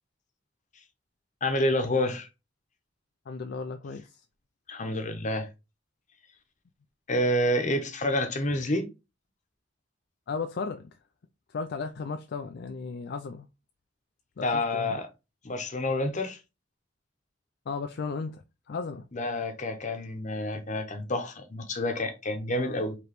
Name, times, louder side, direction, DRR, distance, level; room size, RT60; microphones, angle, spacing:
voice 1, 1.4-2.3 4.7-5.5 7.1-8.9 14.4-15.1 15.4-16.4 19.1-23.0, left 1 dB, 40° left, 0.9 m, -28 dB
voice 2, 3.3-4.2 10.3-10.9 11.5-13.5 14.4-15.0 17.7-19.1 22.5-22.8, left 4 dB, 55° left, 0.4 m, -35 dB
5.0 x 3.1 x 3.0 m
head